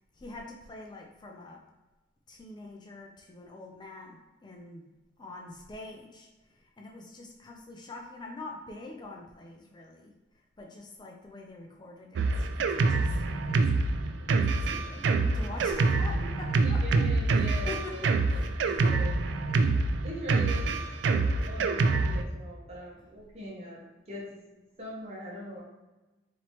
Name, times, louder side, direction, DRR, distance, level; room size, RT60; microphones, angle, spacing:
voice 1, 0.2-1.6 2.3-4.8 5.2-6.3 6.5-10.1 10.6-13.9 14.4-16.8 17.7-17.9 18.3-18.9 19.6-19.9, left 2 dB, 25° left, 0 dB, 0.4 m, -45 dB
Drum kit, 12.2-22.2, right 3 dB, 85° right, 0.3 m, -26 dB
voice 2, 14.7-15.3 16.6-19.1 20.0-20.8 21.0-24.3 24.5-25.6, equal, 35° right, -4 dB, 1.2 m, -42 dB
4.4 x 3.0 x 2.9 m, 1.1 s
head